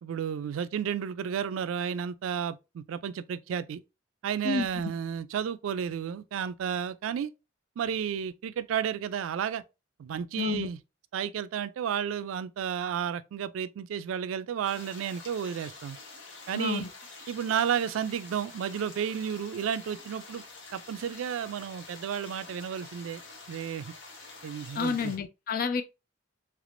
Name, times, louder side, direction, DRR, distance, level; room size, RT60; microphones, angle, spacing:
voice 1, 0.0-3.8 4.2-7.3 7.8-9.6 10.0-10.8 11.1-16.0 16.5-16.9 17.3-20.4 20.7-23.2 23.5-23.9 24.4-25.1, right 8 dB, 90° right, 0.3 m, -32 dB
voice 2, 10.4-10.7 16.5-16.9 24.8-25.8, left 5 dB, 45° left, 0.3 m, -29 dB
sound 1, 14.6-25.2, left 3 dB, 65° left, 1.0 m, -47 dB
3.4 x 3.1 x 2.5 m
head